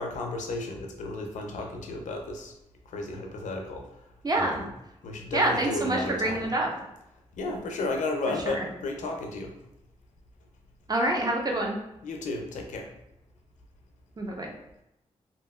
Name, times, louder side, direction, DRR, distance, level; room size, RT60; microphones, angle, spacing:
voice 1, 0.0-2.5 2.9-3.9 4.3-4.7 5.0-6.5 7.4-9.5 12.0-12.9, left 2 dB, 90° left, 3 dB, 0.5 m, -33 dB
voice 2, 4.2-4.6 5.3-6.7 8.5-8.7 10.9-11.8 14.2-14.5, right 1 dB, 30° right, 0 dB, 0.7 m, -26 dB
2.7 x 2.7 x 2.2 m, 0.87 s
cardioid pair, 50°, 12 cm